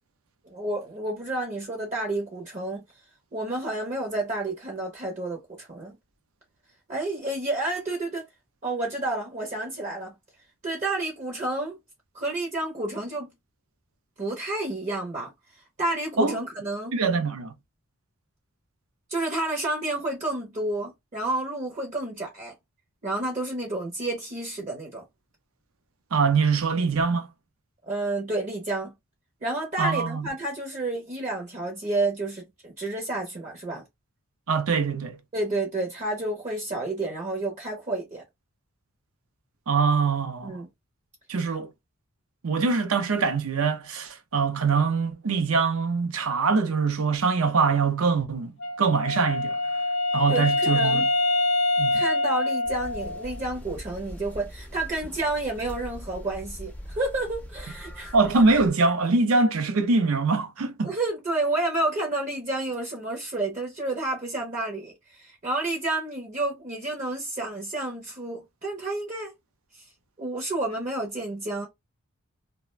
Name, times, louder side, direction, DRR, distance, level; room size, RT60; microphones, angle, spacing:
voice 1, 0.5-2.8 3.3-5.9 6.9-8.3 8.6-10.1 10.6-11.8 12.1-13.3 14.2-16.9 19.1-22.5 23.0-25.0 27.8-28.9 29.4-33.8 35.3-38.2 40.4-40.7 50.3-51.1 51.9-58.1 60.8-69.3 70.2-71.7, right 2 dB, 35° right, 0.6 m, -30 dB
voice 2, 16.9-17.5 26.1-27.3 29.8-30.3 34.5-35.2 39.7-40.6 41.3-41.7 42.4-49.6 50.1-51.1 51.8-52.0 58.1-60.9, right 4 dB, 75° right, 0.5 m, -23 dB
Wind instrument woodwind instrument, 48.6-53.4, left 2 dB, 65° left, 0.7 m, -25 dB
sound 1, 52.6-58.7, equal, 5° left, 0.4 m, -41 dB
2.4 x 2.1 x 3.1 m
head